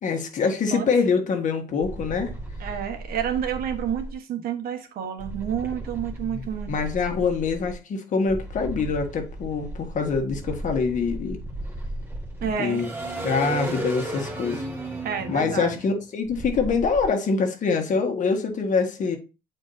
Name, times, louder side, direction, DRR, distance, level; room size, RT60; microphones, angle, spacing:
voice 1, 0.0-2.3 6.3-11.4 12.6-12.9 13.2-14.6 15.3-19.2, left 5 dB, 50° left, 1.6 m, -25 dB
sound 1, 1.8-4.1 5.2-7.7 8.3-17.1, right 1 dB, 15° right, 2.3 m, -35 dB
voice 2, 2.6-6.7 12.4-12.8 15.0-15.8, right 8 dB, 65° right, 1.3 m, -29 dB
8.7 x 4.5 x 2.7 m
cardioid pair, 110°, 17 cm